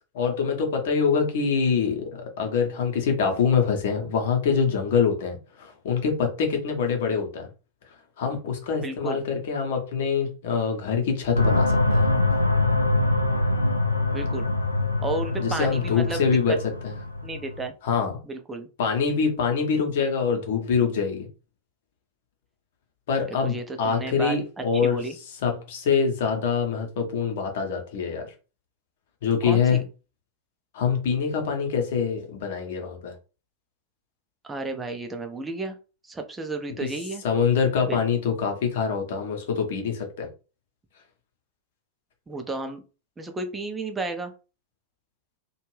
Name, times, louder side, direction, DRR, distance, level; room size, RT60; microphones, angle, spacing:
voice 1, 0.1-7.5 8.2-12.0 15.4-16.6 16.8-16.9 17.8-18.2 18.8-21.3 23.1-25.0 25.4-28.3 29.2-29.8 30.7-33.1 36.8-36.9 37.2-40.3, left 6 dB, 55° left, 0.8 m, -25 dB
voice 2, 8.8-9.2 14.1-14.5 15.0-16.2 17.2-17.7 18.2-18.7 23.3-25.2 29.4-29.8 34.4-35.7 36.1-37.2 37.9-38.0 42.3-42.8 43.2-44.3, right 3 dB, 15° right, 0.6 m, -32 dB
sound 1, 11.4-17.7, left 2 dB, 85° left, 0.4 m, -24 dB
2.6 x 2.3 x 3.2 m
figure-of-eight pair, 90°, 0 cm